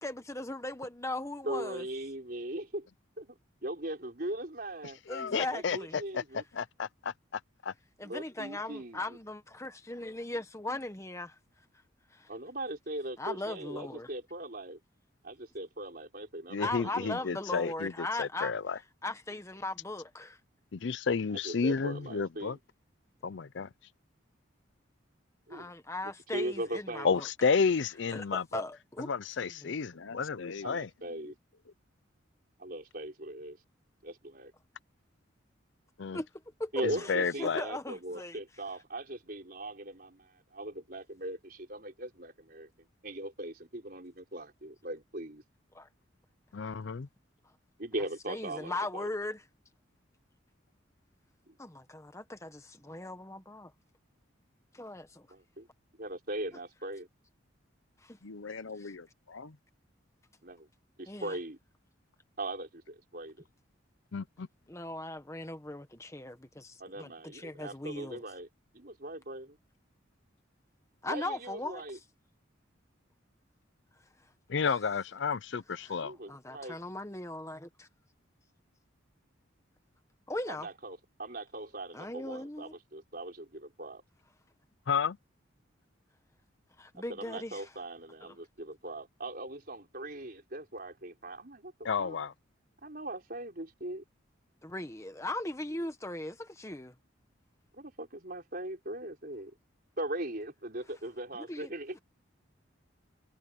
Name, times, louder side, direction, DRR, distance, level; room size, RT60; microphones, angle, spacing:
voice 1, 0.0-1.8 5.1-6.0 8.0-11.4 12.1-12.3 13.2-14.1 16.6-18.5 19.0-20.4 25.5-27.3 28.1-29.1 29.4-29.8 36.1-36.3 36.6-36.7 37.0-37.1 37.4-38.4 45.7-45.9 48.3-49.4 51.6-53.7 54.7-55.3 58.0-58.2 58.8-58.9 61.1-61.4 64.7-68.2 71.0-71.8 74.2-74.3 74.6-74.8 75.8-76.0 76.3-77.9 80.3-80.7 81.9-82.7 86.8-87.7 88.2-88.4 94.6-96.9 101.3-101.7, left 2 dB, 15° left, 1.2 m, -39 dB
voice 2, 1.4-2.9 3.2-5.0 5.5-6.4 8.0-9.0 12.3-14.8 15.2-17.2 21.4-22.6 25.5-25.7 26.3-27.1 30.6-31.3 32.6-33.6 34.0-34.5 36.7-42.7 43.0-45.4 47.8-49.1 51.5-51.6 55.3-55.7 56.0-57.1 60.4-60.7 61.0-61.6 62.4-63.4 66.8-68.5 68.7-69.6 71.1-72.0 76.0-76.8 80.5-84.0 87.1-91.7 92.0-92.2 92.8-94.0 97.7-99.5 100.0-102.0, right 1 dB, 45° right, 4.7 m, -40 dB
voice 3, 5.1-6.2 6.5-7.7 16.5-18.8 20.7-22.6 23.2-23.7 27.0-28.6 29.1-30.9 36.0-36.2 36.8-37.6 46.5-47.1 64.1-64.5 74.5-76.1 84.9-85.2 91.8-92.3, left 5 dB, 65° left, 0.5 m, -31 dB
voice 4, 29.9-30.8 31.1-31.2 31.7-31.8 58.2-59.6, left 4 dB, 85° left, 0.9 m, -44 dB
head